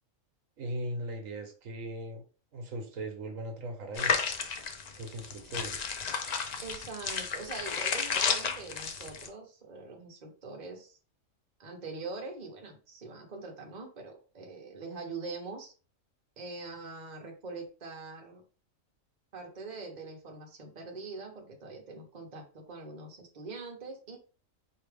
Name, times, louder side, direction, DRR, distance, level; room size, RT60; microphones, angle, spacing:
voice 1, 0.6-2.2 2.5-4.1 4.9-6.0, right 1 dB, 75° right, 4 dB, 1.2 m, -38 dB
sound 1, 4.0-9.3, left 5 dB, 80° left, 0.3 m, -32 dB
voice 2, 6.6-11.0 11.6-15.7 16.4-18.4 19.3-24.2, right 3 dB, 35° right, 1 dB, 1.0 m, -43 dB
4.7 x 2.9 x 3.3 m, 0.36 s
omnidirectional pair, 1.4 m